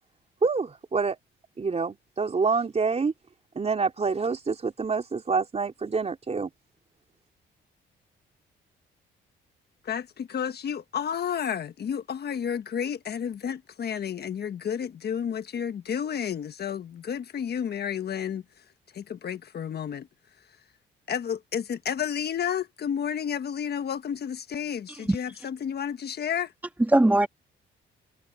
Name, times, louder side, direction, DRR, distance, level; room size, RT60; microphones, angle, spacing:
voice 1, 0.4-1.2 1.6-3.1 3.6-6.5, right 4 dB, 30° right, 3.9 m, -27 dB
voice 2, 9.8-18.4 18.9-20.1 21.1-26.5, left 8 dB, 55° left, 1.3 m, -31 dB
voice 3, 24.9-25.4 26.9-27.3, right 1 dB, 10° right, 1.5 m, -22 dB
cardioid pair, 90°, 20 cm